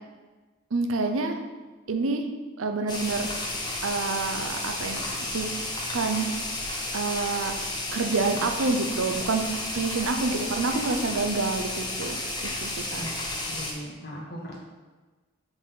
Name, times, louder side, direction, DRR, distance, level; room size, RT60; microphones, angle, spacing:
voice 1, 0.7-1.4 1.9-2.3 2.6-3.3 3.8-5.0 5.3-5.5 5.9-6.3 6.9-7.5 7.9-9.4 9.7-12.2 12.4-13.1, right 3 dB, 90° right, 5 dB, 0.6 m, -27 dB
sound 1, 2.9-13.7, left 2 dB, 20° left, 0.9 m, -32 dB
voice 2, 13.4-14.6, equal, 50° left, -3 dB, 1.5 m, -38 dB
4.9 x 4.1 x 5.6 m, 1.3 s
head